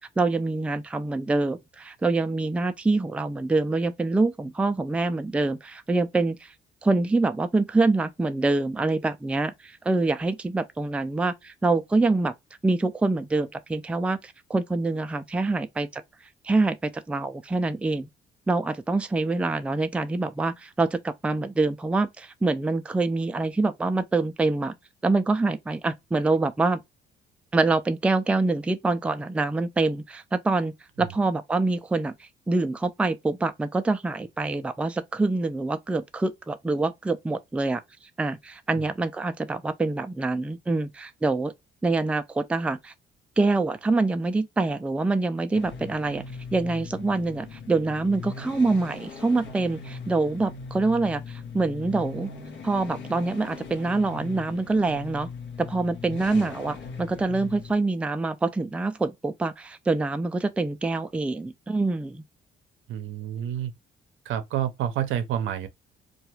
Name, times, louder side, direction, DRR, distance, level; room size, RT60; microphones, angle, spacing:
voice 1, 0.2-6.5 6.8-12.3 12.6-16.0 16.4-18.1 18.5-24.7 25.0-26.8 27.5-32.1 32.5-37.8 38.2-41.5 41.8-42.9 43.4-46.2 46.5-52.3 52.6-55.3 55.6-62.2, right 3 dB, 5° right, 0.3 m, -25 dB
sound 1, 45.5-57.7, left 5 dB, 70° left, 0.8 m, -40 dB
voice 2, 62.9-63.7 64.3-65.7, right 10 dB, 80° right, 0.6 m, -29 dB
2.4 x 2.2 x 2.9 m
cardioid pair, 90°, 20 cm